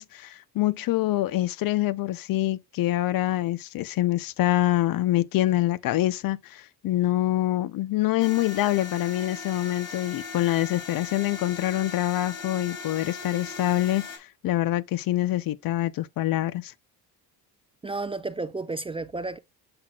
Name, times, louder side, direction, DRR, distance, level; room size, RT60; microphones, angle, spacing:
voice 1, 0.0-16.7, left 15 dB, 60° left, 0.6 m, -25 dB
sound 1, 8.2-14.2, left 5 dB, 85° left, 3.3 m, -39 dB
voice 2, 17.8-19.4, right 3 dB, 15° right, 0.4 m, -32 dB
7.8 x 5.8 x 2.3 m
cardioid pair, 115°, 38 cm